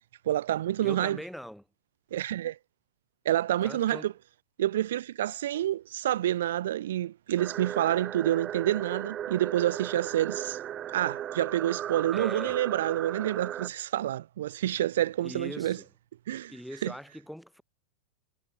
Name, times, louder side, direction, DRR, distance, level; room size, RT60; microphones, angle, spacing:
voice 1, 0.3-1.2 2.1-2.6 3.2-4.1 4.6-10.6 10.9-15.8 16.3-16.5 16.8-16.9, right 12 dB, 60° right, 0.5 m, -28 dB
voice 2, 0.8-1.7 3.6-4.1 12.1-12.6 15.2-15.9 16.5-17.6, equal, ahead, 4.4 m, -41 dB
sound 1, 7.4-13.7, right 11 dB, 30° right, 1.4 m, -36 dB
figure-of-eight pair, 90°, 0 cm